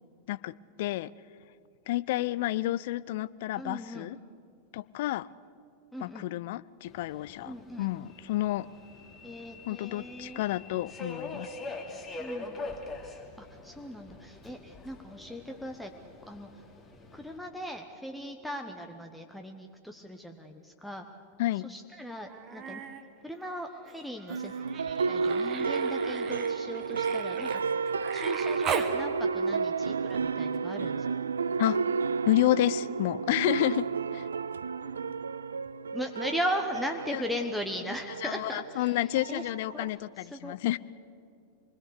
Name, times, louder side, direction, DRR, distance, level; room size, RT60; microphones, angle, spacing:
voice 1, 0.3-1.1 1.9-4.2 4.7-5.3 6.0-8.7 9.7-11.5 21.4-21.7 31.6-31.8 32.3-33.9 34.1-34.2 37.1-37.2 38.2-40.8, left 16 dB, 50° left, 18 dB, 0.5 m, -30 dB
voice 2, 3.6-4.1 5.9-6.3 7.4-7.9 9.2-10.4 12.2-12.6 13.4-15.9 16.3-16.5 17.1-21.0 21.6-22.8 23.2-24.5 25.1-27.6 28.1-31.0 35.9-39.4 39.7-40.5, equal, 5° left, 4 dB, 1.2 m, -38 dB
Subway metro underground, 6.9-17.4, left 3 dB, 20° left, 2.9 m, -44 dB
Human voice, 22.3-23.0 23.3-29.0 30.5-30.6, right 7 dB, 30° right, 1.5 m, -39 dB
sound 1, 24.3-39.9, right 5 dB, 70° right, 0.5 m, -32 dB
26.0 x 21.0 x 6.7 m, 2.4 s
figure-of-eight pair, 90°, 0 cm